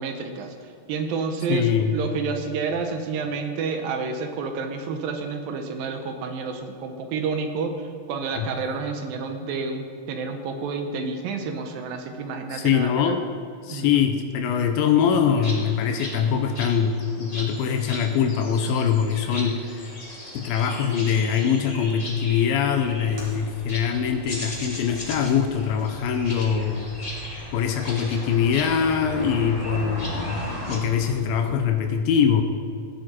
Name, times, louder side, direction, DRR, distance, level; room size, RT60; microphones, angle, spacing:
voice 1, 0.0-13.2 13.7-14.1, right 5 dB, 80° right, 5 dB, 2.7 m, -30 dB
voice 2, 1.5-2.0 8.4-8.5 12.5-13.2 13.6-19.9 20.3-26.9 27.5-30.4 30.7-32.4, left 7 dB, 85° left, 6 dB, 2.5 m, -23 dB
sound 1, 15.4-30.8, left 1 dB, 15° left, 1.4 m, -37 dB
Splash splatter, 22.7-31.6, equal, 35° right, 3.7 m, -44 dB
16.5 x 10.5 x 4.4 m, 2.4 s
omnidirectional pair, 4.1 m